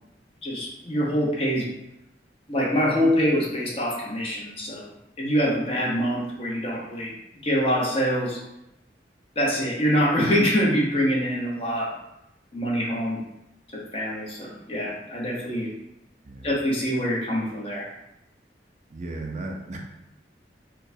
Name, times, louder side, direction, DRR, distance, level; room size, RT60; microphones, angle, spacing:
voice 1, 0.4-1.7 2.5-7.1 7.4-8.4 9.4-12.0 12.5-13.2 13.7-15.7 16.4-17.9, equal, 30° left, -4 dB, 0.7 m, -25 dB
voice 2, 18.9-19.8, right 2 dB, 40° right, 1 dB, 0.4 m, -35 dB
4.6 x 2.1 x 2.6 m, 0.86 s
head